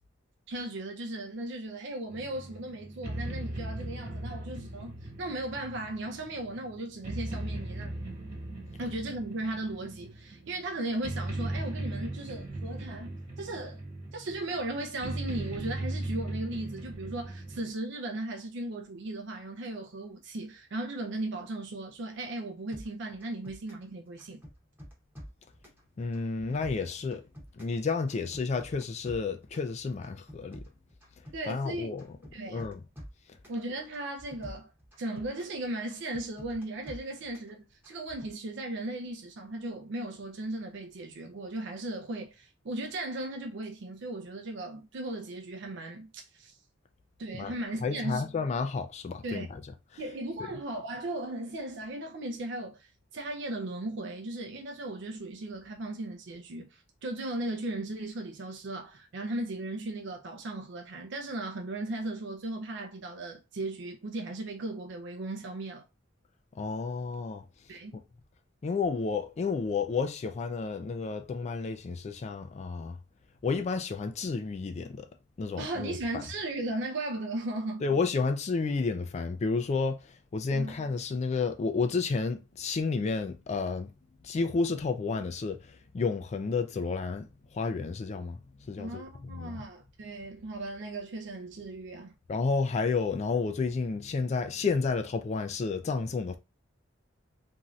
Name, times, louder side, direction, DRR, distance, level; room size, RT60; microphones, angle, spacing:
voice 1, 0.5-8.0 8.8-13.8 14.1-24.4 31.3-31.9 32.3-32.7 33.5-34.7 35.0-46.6 47.2-48.2 49.2-49.5 50.0-65.8 67.7-68.0 75.6-77.9 80.5-80.7 88.8-92.1, right 2 dB, 65° right, 0.5 m, -37 dB
sound 1, 2.1-17.7, right 1 dB, 35° right, 1.3 m, -38 dB
sound 2, 22.7-23.9 24.2-25.8 26.1-27.8 28.1-29.7 30.0-31.7 32.0-33.6 33.9-35.6 35.9-37.5 37.8-38.3, equal, 10° right, 0.9 m, -48 dB
voice 2, 26.0-27.2 27.6-30.6 31.5-32.0 32.5-32.8 47.4-47.5 47.8-49.6 66.6-67.4 67.9-68.0 68.6-73.0 73.4-75.1 75.4-76.2 77.8-83.9 84.2-88.4 88.7-89.6 92.3-96.4, left 4 dB, 35° left, 0.3 m, -31 dB
3.0 x 2.7 x 2.3 m
head